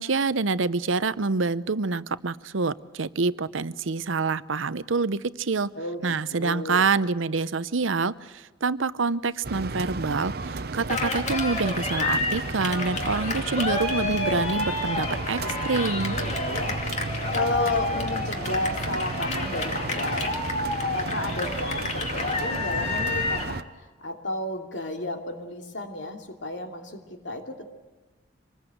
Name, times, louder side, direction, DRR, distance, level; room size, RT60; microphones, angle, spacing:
voice 1, 0.0-5.7 6.0-15.4 15.6-16.2, right 4 dB, 90° right, 15 dB, 0.8 m, -26 dB
voice 2, 5.7-6.9 16.1-16.8 17.3-20.3 20.8-27.7, left 2 dB, 70° left, 4 dB, 2.9 m, -32 dB
sound 1, 9.4-23.6, right 3 dB, 50° right, 0.8 m, -33 dB
Cheering, 10.9-23.5, left 3 dB, 35° left, 2.4 m, -30 dB
26.0 x 20.5 x 8.0 m, 1.2 s
head